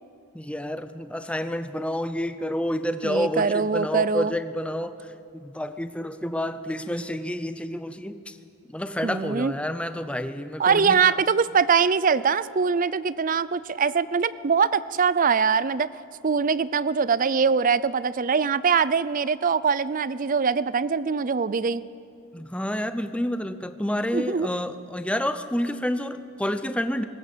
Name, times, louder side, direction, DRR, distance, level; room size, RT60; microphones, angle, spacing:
voice 1, 0.3-5.0 5.3-8.4 8.7-11.0 22.3-27.0, equal, 5° left, 10 dB, 0.6 m, -29 dB
voice 2, 3.0-4.3 9.0-9.5 10.6-15.9 16.2-21.8 24.1-24.5, right 5 dB, 40° right, 18 dB, 0.5 m, -23 dB
21.5 x 19.0 x 6.8 m, 2.4 s
head